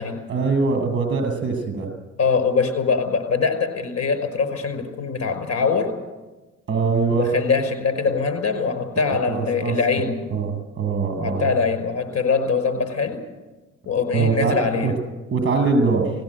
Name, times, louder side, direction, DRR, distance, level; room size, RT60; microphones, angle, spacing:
voice 1, 0.3-1.9 6.7-7.3 9.0-9.8 10.3-11.5 14.1-14.9 15.3-16.1, right 4 dB, 40° right, 4 dB, 7.9 m, -22 dB
voice 2, 2.2-5.9 7.1-10.2 11.2-13.2 13.9-14.9, left 5 dB, 55° left, 8 dB, 5.2 m, -22 dB
19.0 x 16.5 x 9.2 m, 1.2 s
cardioid pair, 90°, 30 cm